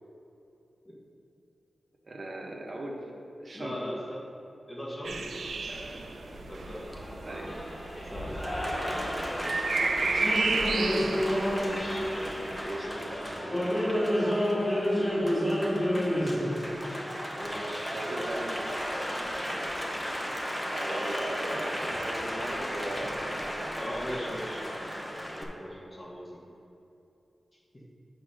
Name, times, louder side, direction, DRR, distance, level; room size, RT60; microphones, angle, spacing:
voice 1, 2.1-3.0 3.4-3.9 7.2-7.5 12.6-12.9 17.9-18.9 20.7-23.8, right 1 dB, 40° right, -1 dB, 1.1 m, -38 dB
voice 2, 3.5-4.3 4.7-5.6 6.5-6.9 7.4-7.6 8.0-10.3 11.6-14.2 17.4-18.4 20.9-21.1 23.8-24.7 25.3-26.6 27.5-27.8, equal, 25° left, -4 dB, 1.5 m, -40 dB
sound 1, 5.0-12.6, right 4 dB, 75° right, 0.5 m, -33 dB
Applause, 5.7-25.4, equal, 10° left, 0.7 m, -31 dB
8.5 x 4.3 x 5.1 m, 2.8 s
wide cardioid pair, 130°, 0 cm